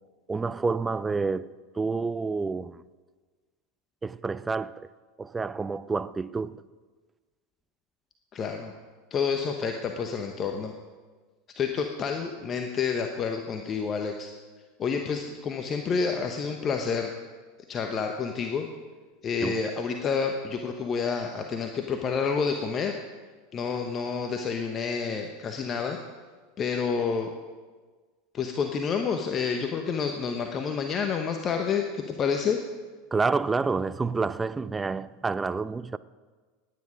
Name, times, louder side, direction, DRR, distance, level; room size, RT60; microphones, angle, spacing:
voice 1, 0.3-2.8 4.0-4.9 5.2-6.6 19.4-19.6 33.1-36.0, right 4 dB, 15° right, 0.5 m, -29 dB
voice 2, 8.3-8.7 9.1-10.7 11.5-14.3 14.8-17.1 17.7-18.7 19.2-22.9 23.5-26.0 26.6-27.3 28.3-32.6, left 6 dB, 35° left, 1.1 m, -29 dB
19.0 x 9.9 x 5.2 m
hypercardioid pair, 85°, 0 cm